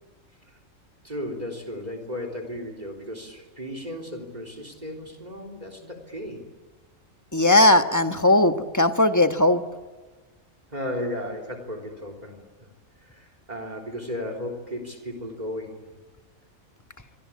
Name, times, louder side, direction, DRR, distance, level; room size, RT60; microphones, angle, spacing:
voice 1, 1.0-6.5 10.7-12.7 13.0-16.0, left 1 dB, 30° right, 6 dB, 3.7 m, -35 dB
voice 2, 7.3-9.6, left 1 dB, 15° left, 7 dB, 1.1 m, -18 dB
28.5 x 24.0 x 8.6 m, 1.3 s
omnidirectional pair, 1.5 m